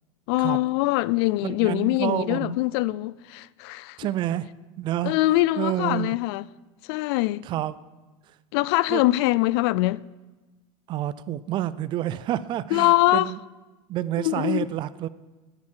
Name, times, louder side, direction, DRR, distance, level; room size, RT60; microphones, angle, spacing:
voice 1, 0.3-4.0 5.0-6.4 6.9-7.5 8.5-10.0 12.7-13.3 14.2-14.7, left 18 dB, 50° left, 0.4 m, -23 dB
voice 2, 1.4-2.6 4.0-4.5 4.8-5.1 5.6-6.2 7.4-7.7 8.9-9.0 10.9-13.4 13.9-15.1, right 13 dB, 30° right, 0.4 m, -28 dB
13.0 x 10.5 x 7.5 m
supercardioid pair, 160°, 17 cm